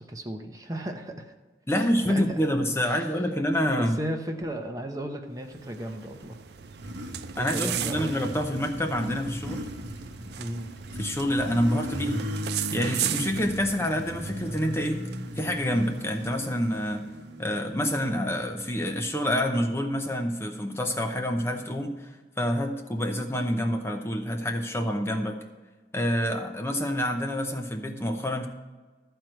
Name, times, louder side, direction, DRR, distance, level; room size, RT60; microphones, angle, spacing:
voice 1, 0.0-1.3 1.7-2.4 2.9-3.1 3.6-6.4 7.4-8.1 10.4-10.7, right 1 dB, 20° right, 4 dB, 0.7 m, -35 dB
voice 2, 1.7-4.0 7.4-9.7 11.0-12.3 12.7-15.0 15.4-17.0 17.4-25.4 25.9-28.5, equal, 15° left, 3 dB, 0.7 m, -27 dB
sound 1, 5.4-17.2, right 12 dB, 70° right, 0.4 m, -38 dB
Motorcycle, 5.9-18.6, equal, 90° right, 1.0 m, -37 dB
13.0 x 4.5 x 7.7 m, 1.3 s
head